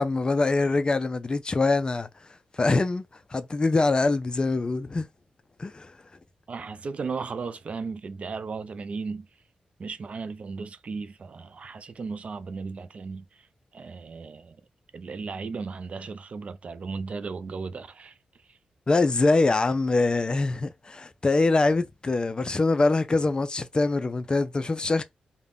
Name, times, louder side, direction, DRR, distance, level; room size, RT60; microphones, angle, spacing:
voice 1, 0.0-2.1 2.6-3.1 3.3-5.1 5.6-5.9 18.9-25.0, left 3 dB, 30° left, 0.4 m, -24 dB
voice 2, 6.5-9.3 9.8-13.5 13.7-14.6 14.9-18.2 18.5-18.6, right 4 dB, 50° right, 0.3 m, -35 dB
2.4 x 2.1 x 3.3 m
cardioid pair, 80°, 3 cm